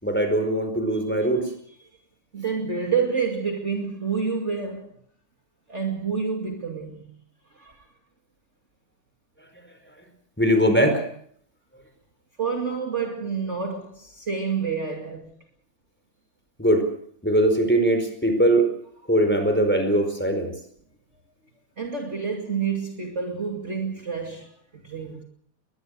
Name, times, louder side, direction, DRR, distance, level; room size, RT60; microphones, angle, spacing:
voice 1, 0.0-1.5 10.4-11.0 16.6-16.9 17.2-18.7 19.1-20.5, right 1 dB, 5° left, 4.7 m, -21 dB
voice 2, 2.3-4.9 5.7-7.2 7.5-7.8 12.4-15.3 21.8-25.2, right 5 dB, 35° right, 2.7 m, -28 dB
22.5 x 20.5 x 6.7 m
omnidirectional pair, 2.2 m